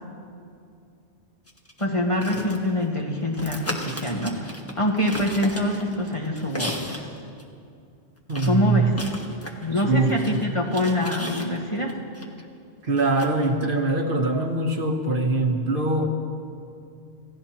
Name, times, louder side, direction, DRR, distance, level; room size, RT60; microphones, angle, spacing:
sound 1, 1.5-3.0 3.3-7.1 7.4-7.5 8.3-12.2 13.0-13.5, left 1 dB, 15° left, 1.3 m, -35 dB
voice 1, 1.8-7.1 8.4-8.9 9.6-12.0, left 1 dB, 30° left, -1 dB, 1.6 m, -25 dB
voice 2, 8.3-8.9 9.7-10.4 12.8-16.1, right 2 dB, 50° right, 2 dB, 1.3 m, -23 dB
27.5 x 16.5 x 3.0 m, 2.4 s
omnidirectional pair, 1.1 m